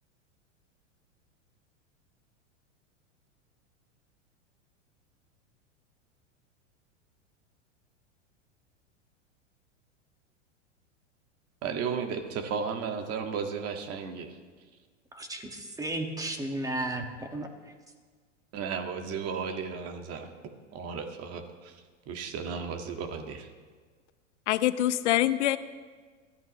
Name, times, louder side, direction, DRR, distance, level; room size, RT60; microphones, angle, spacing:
voice 1, 11.6-14.4 18.5-20.3 20.7-21.8 22.1-23.5, right 6 dB, 40° right, 5 dB, 1.9 m, -34 dB
voice 2, 15.1-17.1 17.3-17.5, right 1 dB, 10° right, 4 dB, 1.7 m, -33 dB
voice 3, 24.5-25.6, left 14 dB, 65° left, 14 dB, 0.9 m, -25 dB
22.0 x 14.5 x 3.2 m, 1.5 s
hypercardioid pair, 105°, 37 cm